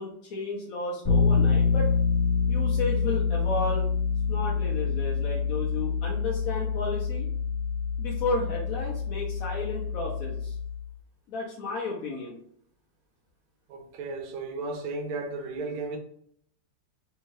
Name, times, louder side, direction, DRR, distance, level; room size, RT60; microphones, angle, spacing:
voice 1, 0.0-1.9 2.5-3.9 4.3-7.3 8.0-10.5 11.3-12.4, left 3 dB, 65° left, 0.9 m, -33 dB
Bass guitar, 1.0-10.9, left 5 dB, 25° left, 1.5 m, -26 dB
voice 2, 13.7-16.0, right 3 dB, 65° right, 1.1 m, -34 dB
3.5 x 2.7 x 3.1 m
omnidirectional pair, 2.0 m